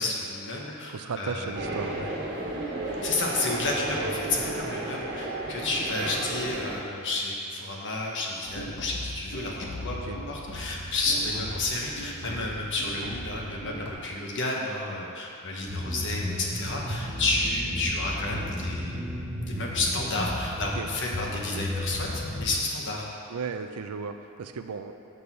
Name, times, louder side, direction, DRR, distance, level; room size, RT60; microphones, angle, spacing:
voice 1, 0.0-1.6 3.0-19.1 19.4-23.0, left 2 dB, 55° left, -1 dB, 1.2 m, -31 dB
voice 2, 0.9-2.1 9.9-10.2 12.9-13.1 20.8-20.9 21.5-21.6 23.3-24.9, right 5 dB, 85° right, 8 dB, 0.5 m, -35 dB
sound 1, 1.5-6.8, right 1 dB, 50° right, 1.3 m, -33 dB
sound 2, 8.5-13.9, left 1 dB, 85° left, 1.2 m, -39 dB
sound 3, 15.7-22.5, left 1 dB, 10° right, 1.7 m, -33 dB
6.9 x 6.2 x 5.5 m, 2.7 s
head